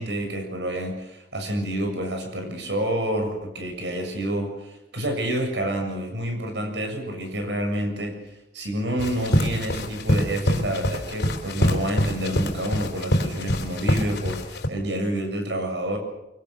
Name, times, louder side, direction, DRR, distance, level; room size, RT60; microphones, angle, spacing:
voice 1, 0.0-8.2 8.5-16.0, right 1 dB, 80° right, 4 dB, 7.2 m, -28 dB
sound 1, 9.0-14.7, equal, 75° left, 3.6 m, -25 dB
25.0 x 24.0 x 6.8 m, 0.92 s
head